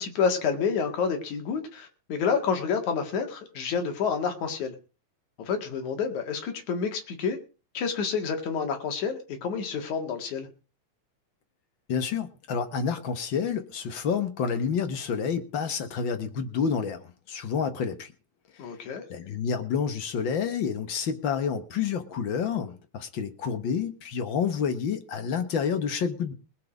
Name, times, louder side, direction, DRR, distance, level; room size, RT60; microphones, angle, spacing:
voice 1, 0.0-4.7 5.5-7.4 7.7-10.5 18.6-19.1, left 6 dB, 80° left, 5 dB, 3.4 m, -29 dB
voice 2, 11.9-17.0 17.3-18.1 19.1-26.3, left 6 dB, 50° left, 9 dB, 1.7 m, -29 dB
20.5 x 7.6 x 5.1 m, 0.35 s
omnidirectional pair, 3.3 m